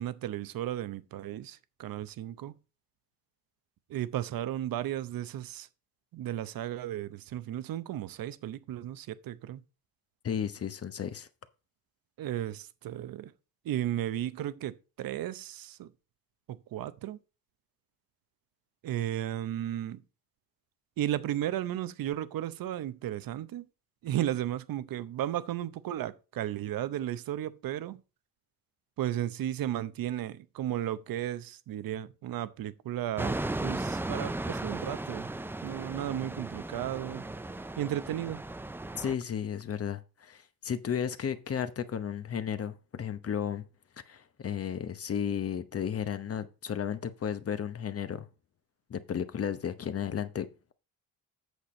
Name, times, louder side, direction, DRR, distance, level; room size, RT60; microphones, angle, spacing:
voice 1, 0.0-2.5 3.9-5.7 6.1-9.6 12.2-13.3 13.6-15.9 16.5-17.2 18.8-20.0 21.0-23.7 24.0-28.0 29.0-35.3 35.6-37.3 37.8-38.4, right 12 dB, 65° right, 0.8 m, -34 dB
voice 2, 10.2-11.3 39.0-43.6 44.1-48.3 48.9-50.7, left 8 dB, 40° left, 0.9 m, -34 dB
sound 1, 33.2-39.2, right 2 dB, 5° right, 0.3 m, -36 dB
8.2 x 6.7 x 4.2 m
cardioid pair, 110°, 37 cm